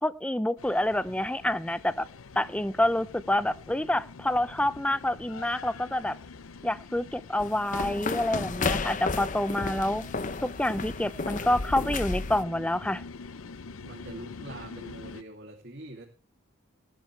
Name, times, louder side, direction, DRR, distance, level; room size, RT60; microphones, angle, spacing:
voice 1, 0.0-2.0 2.4-6.1 6.6-10.0 10.4-13.0, left 1 dB, 5° left, 15 dB, 0.5 m, -27 dB
sound 1, 0.6-15.2, left 4 dB, 85° left, 0.6 m, -45 dB
sound 2, 7.4-12.4, left 3 dB, 40° left, 0.8 m, -32 dB
voice 2, 13.8-16.0, right 1 dB, 50° right, -1 dB, 2.7 m, -44 dB
19.0 x 12.0 x 3.3 m, 0.34 s
head